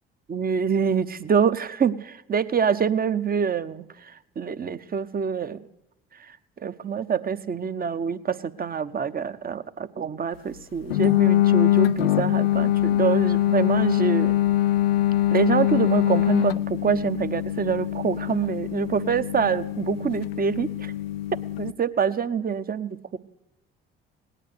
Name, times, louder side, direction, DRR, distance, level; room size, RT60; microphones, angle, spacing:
voice 1, 0.3-5.6 6.6-14.4 15.3-20.9 21.6-23.2, right 7 dB, 30° right, 13 dB, 0.9 m, -26 dB
sound 1, 10.9-21.7, left 14 dB, 90° left, 0.5 m, -23 dB
18.5 x 10.0 x 6.6 m, 0.95 s
hypercardioid pair, 50°, 29 cm